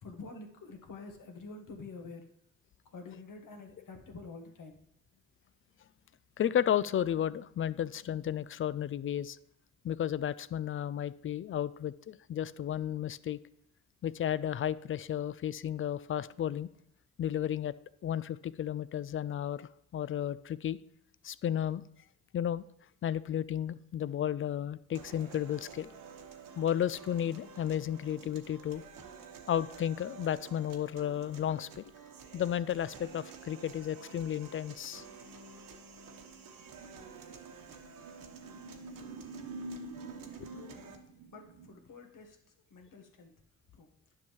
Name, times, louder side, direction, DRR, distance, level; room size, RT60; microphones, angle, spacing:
voice 1, 0.0-2.2 2.9-4.8 40.5-40.8 41.3-42.4 42.7-43.4 43.7-43.9, left 3 dB, 55° left, 1.5 m, -48 dB
voice 2, 6.4-9.4 9.8-13.4 14.0-16.7 17.2-17.7 18.0-20.8 21.2-21.8 22.3-22.6 23.0-25.9 26.6-28.8 29.5-31.9 32.3-35.0 40.4-40.5, left 10 dB, 35° left, 0.4 m, -33 dB
sound 1, 25.0-41.0, right 5 dB, 60° right, 1.2 m, -51 dB
sound 2, 36.6-41.7, right 2 dB, 80° right, 0.9 m, -47 dB
10.5 x 5.7 x 3.1 m
hypercardioid pair, 45°, 37 cm